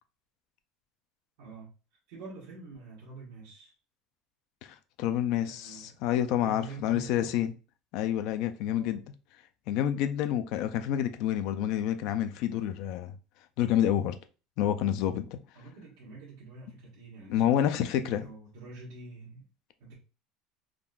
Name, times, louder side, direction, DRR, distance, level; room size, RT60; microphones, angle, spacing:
voice 1, 1.4-1.7 2.1-3.7 5.4-6.0 6.4-7.5 8.7-9.0 15.5-19.5 19.8-19.9, right 4 dB, 70° right, 1.1 m, -46 dB
voice 2, 5.0-7.5 7.9-9.0 9.7-13.2 13.6-14.2 14.6-15.4 17.3-18.3, left 11 dB, 50° left, 0.3 m, -28 dB
3.6 x 2.5 x 2.3 m
cardioid pair, 175°, 0 cm